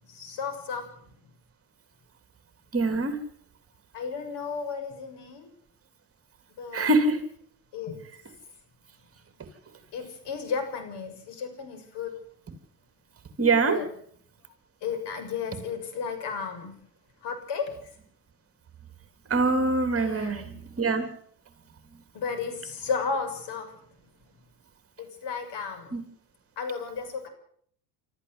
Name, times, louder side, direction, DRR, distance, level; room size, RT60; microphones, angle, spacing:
voice 1, 0.0-0.9 3.9-5.5 6.6-7.0 7.7-8.0 9.9-12.1 13.7-13.9 14.8-16.7 17.2-17.7 20.0-20.6 22.1-23.8 25.0-26.0 26.6-27.3, left 5 dB, 55° left, 7 dB, 7.0 m, -33 dB
voice 2, 2.7-3.2 6.7-7.2 13.4-13.8 19.3-21.0 25.9-26.0, right 3 dB, 25° right, 8 dB, 3.4 m, -24 dB
26.5 x 13.5 x 8.1 m, 0.62 s
supercardioid pair, 95°, 50 cm